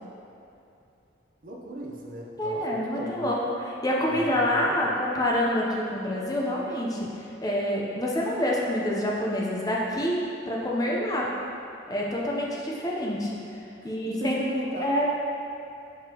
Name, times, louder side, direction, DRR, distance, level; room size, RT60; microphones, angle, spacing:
voice 1, 1.4-3.3 4.1-4.8 13.8-15.0, right 1 dB, 45° right, -1 dB, 0.6 m, -37 dB
voice 2, 2.4-11.3 11.9-13.4 13.8-14.4 14.8-15.1, left 1 dB, 20° left, -3 dB, 0.7 m, -27 dB
6.9 x 5.4 x 2.9 m, 2.7 s
head